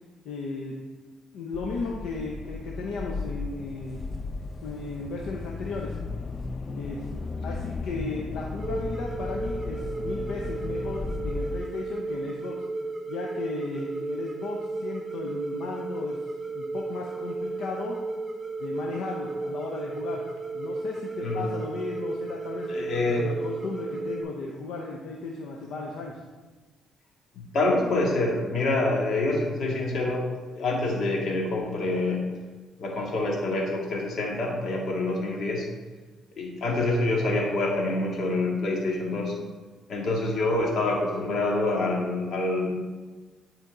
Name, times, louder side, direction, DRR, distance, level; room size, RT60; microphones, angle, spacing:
voice 1, 0.2-0.8 1.3-4.1 4.6-6.0 6.7-7.1 7.4-12.6 13.1-16.2 16.5-18.0 18.6-20.2 20.5-26.2, left 3 dB, 85° left, -1 dB, 0.8 m, -35 dB
sound 1, 1.5-11.6, left 3 dB, 35° left, 0.4 m, -35 dB
sound 2, 8.6-24.2, right 3 dB, 20° right, 1.7 m, -34 dB
voice 2, 21.2-21.5 22.7-23.3 23.6-23.7 27.4-32.3 32.8-35.7 36.4-39.4 39.9-42.7, left 2 dB, 65° left, -1 dB, 1.9 m, -26 dB
10.5 x 4.4 x 3.9 m, 1.3 s
cardioid pair, 90°, 0 cm